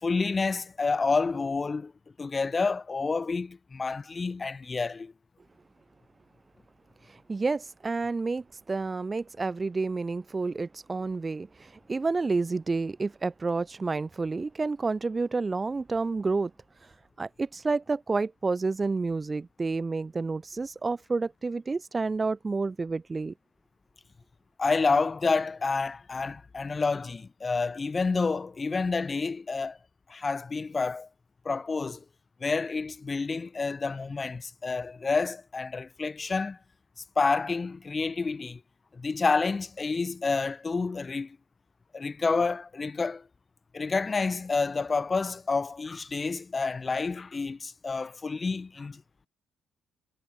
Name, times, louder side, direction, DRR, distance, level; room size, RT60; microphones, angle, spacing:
voice 1, 0.0-1.9 2.2-5.1 24.6-29.8 30.1-31.1 31.4-32.0 32.4-36.6 37.2-38.6 38.9-41.4 41.9-43.3 43.7-49.0, left 4 dB, 30° left, 4.0 m, -29 dB
voice 2, 7.1-16.5 16.8-16.9 17.2-23.3, right 3 dB, 30° right, 1.5 m, -30 dB
figure-of-eight pair, 45°, 0 cm